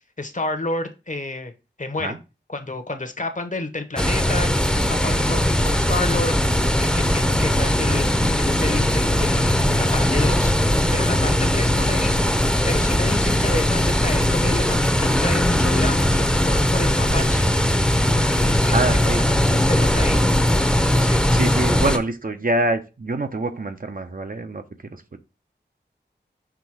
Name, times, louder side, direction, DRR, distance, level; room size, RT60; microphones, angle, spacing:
voice 1, 0.2-1.5 1.8-2.2 2.5-10.5 10.9-17.5 18.1-20.2 20.5-21.2, left 2 dB, 40° left, 0.9 m, -30 dB
sound 1, 4.0-22.0, left 1 dB, 5° left, 0.8 m, -19 dB
voice 2, 18.6-19.2 21.3-24.6 24.9-25.2, right 2 dB, 50° right, 0.8 m, -25 dB
6.0 x 3.4 x 4.7 m
wide cardioid pair, 70°, 19 cm